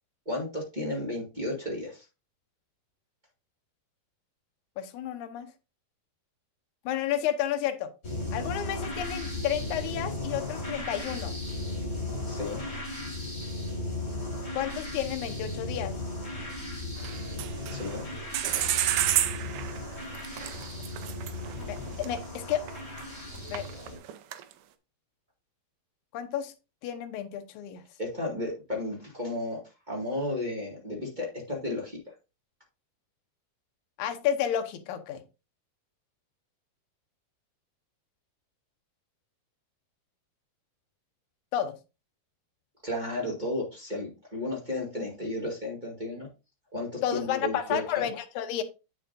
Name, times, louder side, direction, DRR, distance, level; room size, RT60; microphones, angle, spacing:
voice 1, 0.2-2.0 12.3-12.6 17.7-18.0 28.0-29.6 29.9-32.0 42.8-46.3 46.7-48.1, left 1 dB, 20° right, -3 dB, 1.1 m, -33 dB
voice 2, 4.8-5.5 6.9-7.9 8.3-11.4 14.5-16.0 21.7-22.6 23.5-23.7 26.1-26.5 26.8-27.8 34.0-35.2 41.5-41.7 47.0-48.6, left 10 dB, 70° left, 7 dB, 1.9 m, -31 dB
sound 1, 8.0-24.0, left 2 dB, 25° left, 4.0 m, -36 dB
sound 2, 17.0-18.1 18.3-23.0 23.3-24.5, right 12 dB, 80° right, 2.6 m, -30 dB
8.8 x 6.9 x 2.6 m, 0.28 s
omnidirectional pair, 4.3 m